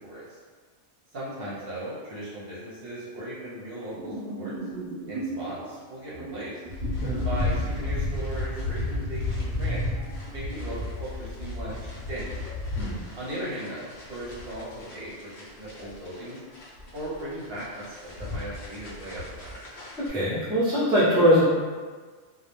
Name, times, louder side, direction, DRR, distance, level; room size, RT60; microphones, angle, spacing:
voice 1, 1.1-4.5 5.1-6.6 7.2-9.8 10.3-12.4 13.2-15.1 15.6-16.4 16.9-19.6, right 1 dB, 55° right, -8 dB, 0.8 m, -37 dB
sound 1, 3.9-5.5 6.1-10.3, right 3 dB, 30° right, 0.9 m, -38 dB
sound 2, 6.7-20.1, left 2 dB, 65° left, 0.8 m, -33 dB
voice 2, 20.0-21.4, equal, 5° right, -9 dB, 0.4 m, -22 dB
2.2 x 2.0 x 3.0 m, 1.5 s
omnidirectional pair, 1.3 m